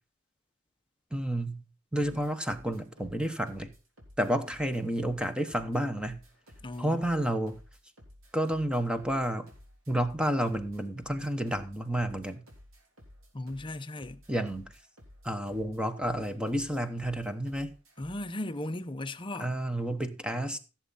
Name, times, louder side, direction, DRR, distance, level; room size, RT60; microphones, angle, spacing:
voice 1, 1.1-1.6 1.9-3.7 4.2-6.2 6.8-7.6 8.3-9.5 9.9-12.4 14.3-14.7 15.2-17.7 19.4-20.6, right 1 dB, 5° right, 1.0 m, -30 dB
sound 1, 2.0-18.3, left 1 dB, 75° right, 3.4 m, -55 dB
voice 2, 6.6-7.0 13.3-14.2 18.0-19.5, left 1 dB, 25° left, 0.7 m, -36 dB
15.0 x 7.3 x 4.1 m
head